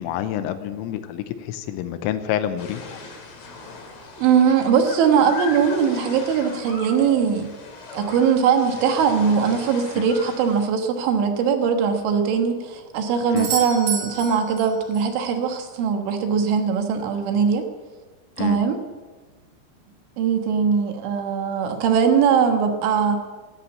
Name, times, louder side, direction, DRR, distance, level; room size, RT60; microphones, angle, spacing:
voice 1, 0.0-3.0 10.0-10.1 13.3-13.5 18.4-18.6, left 11 dB, 85° left, 10 dB, 3.3 m, -28 dB
sound 1, 2.6-10.6, left 3 dB, 45° left, 2.6 m, -38 dB
voice 2, 4.2-7.5 7.9-17.6 18.4-18.8 20.2-23.2, right 6 dB, 70° right, 5 dB, 3.6 m, -20 dB
Doorbell, 13.4-15.2 19.3-19.4, right 7 dB, 90° right, 5.0 m, -31 dB
14.0 x 11.0 x 8.6 m, 1.3 s
omnidirectional pair, 6.0 m